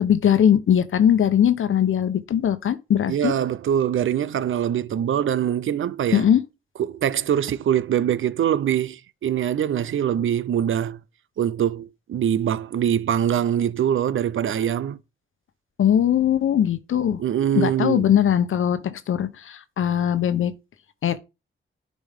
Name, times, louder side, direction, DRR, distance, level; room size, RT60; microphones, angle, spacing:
voice 1, 0.0-3.3 6.1-6.4 15.8-17.2 17.5-20.5 21.0-21.2, left 9 dB, 80° left, 0.9 m, -20 dB
voice 2, 3.1-6.3 6.8-11.0 11.4-15.0 17.2-18.1, right 9 dB, 75° right, 0.6 m, -23 dB
11.0 x 5.3 x 3.6 m
cardioid pair, 85°, 21 cm